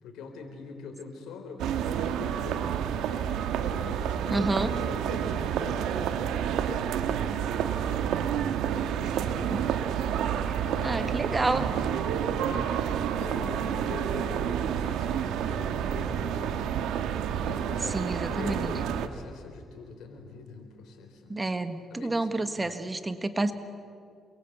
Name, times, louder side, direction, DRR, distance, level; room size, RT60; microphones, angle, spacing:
voice 1, 0.0-7.0 7.7-8.1 8.7-9.7 10.6-11.2 12.0-12.8 13.1-16.9 17.4-21.5 21.9-22.7, left 4 dB, 85° left, 5 dB, 4.2 m, -43 dB
sound 1, 1.6-19.1, right 8 dB, 90° right, 1.4 m, -29 dB
voice 2, 4.3-4.7 9.5-9.6 10.5-10.6 10.8-11.7 17.9-18.7 21.3-23.5, right 2 dB, 20° right, 10 dB, 1.5 m, -29 dB
28.5 x 22.5 x 8.2 m, 2.3 s
cardioid pair, 90°, 0 cm